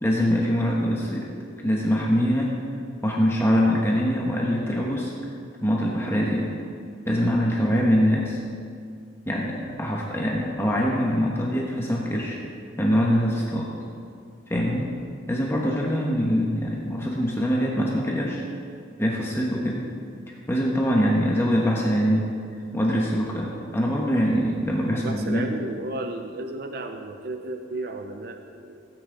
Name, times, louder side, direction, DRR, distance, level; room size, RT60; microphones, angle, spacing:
voice 1, 0.0-1.3 1.6-2.5 3.0-5.1 5.6-6.5 7.0-8.4 9.2-12.4 12.8-13.7 14.5-14.9 15.3-18.4 19.0-19.8 20.5-22.3 22.7-25.4, equal, 15° left, -2 dB, 1.2 m, -23 dB
voice 2, 24.9-28.9, right 2 dB, 50° right, 5 dB, 0.6 m, -34 dB
16.5 x 9.6 x 3.9 m, 2.3 s
head